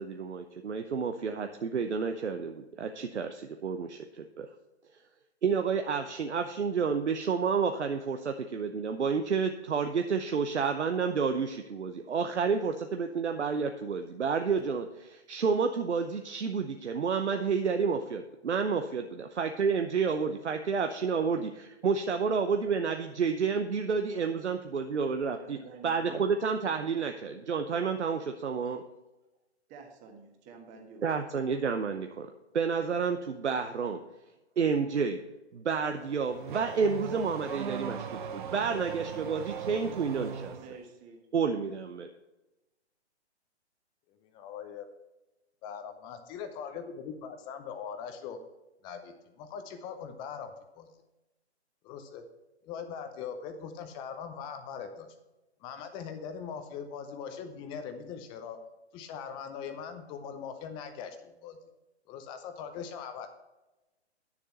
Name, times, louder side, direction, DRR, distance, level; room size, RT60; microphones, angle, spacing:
voice 1, 0.0-4.5 5.4-25.6 25.8-28.8 31.0-32.3 32.5-34.0 34.6-35.2 35.5-38.1 38.3-40.6 41.3-42.1, right 5 dB, 80° right, 6 dB, 0.8 m, -30 dB
voice 2, 25.3-26.2 29.7-31.2 40.5-41.3, right 4 dB, 20° right, 3 dB, 1.5 m, -49 dB
Car / Accelerating revving vroom, 35.8-40.8, right 7 dB, 45° right, 0.9 m, -39 dB
voice 3, 44.2-44.9 45.6-48.4 48.8-50.9 51.8-52.2 52.6-55.1 55.6-58.6 58.9-61.6 62.1-63.3, left 7 dB, 15° left, 8 dB, 0.6 m, -41 dB
9.6 x 7.1 x 4.2 m, 1.0 s
figure-of-eight pair, 135°, 34 cm